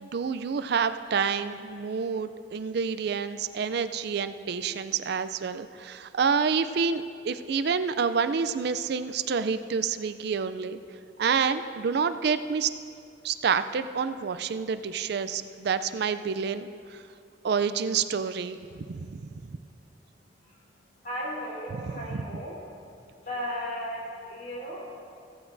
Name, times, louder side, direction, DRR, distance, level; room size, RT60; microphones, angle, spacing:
voice 1, 0.0-10.8 11.2-12.7 13.2-16.7 17.4-18.6 18.9-19.3 21.7-22.2, right 6 dB, 60° right, 11 dB, 0.4 m, -28 dB
voice 2, 21.0-22.6 23.3-25.0, equal, 50° left, -5 dB, 3.6 m, -35 dB
16.0 x 14.5 x 2.6 m, 2.4 s
head